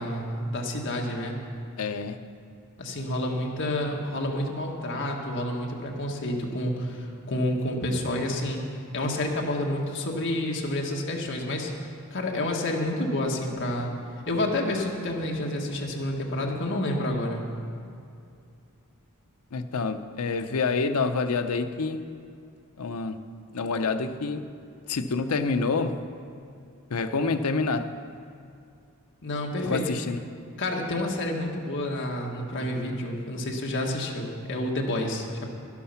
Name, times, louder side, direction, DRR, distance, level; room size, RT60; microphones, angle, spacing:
voice 1, 0.0-1.4 2.8-8.6 8.9-11.7 12.1-13.9 14.3-17.4 29.2-29.9 30.6-35.5, left 1 dB, 55° left, 1.6 m, -29 dB
voice 2, 1.8-2.2 19.5-22.1 22.8-23.2 23.5-24.5 24.9-26.0 26.9-28.0 29.6-30.2, left 4 dB, 80° left, 0.7 m, -27 dB
12.0 x 11.5 x 5.7 m
head